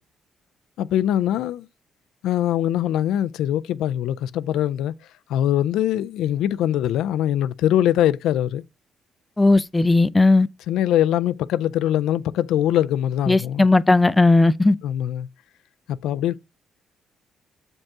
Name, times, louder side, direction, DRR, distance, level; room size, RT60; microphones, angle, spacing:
voice 1, 0.8-1.7 2.2-4.9 5.3-8.6 10.7-13.7 14.8-15.3 15.9-16.4, left 11 dB, 85° left, 0.4 m, -22 dB
voice 2, 9.4-10.5 13.3-14.8, left 2 dB, 15° left, 0.5 m, -16 dB
7.3 x 5.3 x 3.6 m
cardioid pair, 90°, 0 cm